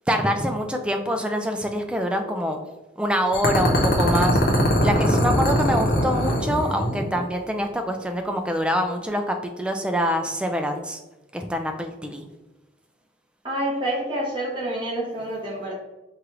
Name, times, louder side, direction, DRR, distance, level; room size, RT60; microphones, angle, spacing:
voice 1, 0.1-2.6 3.0-4.4 4.8-11.0 11.3-12.3, equal, 5° right, 4 dB, 0.3 m, -25 dB
sound 1, 3.3-7.2, equal, 50° left, 0.9 m, -21 dB
voice 2, 13.4-15.7, right 1 dB, 25° right, -5 dB, 1.2 m, -28 dB
4.7 x 2.4 x 3.0 m, 1.0 s
head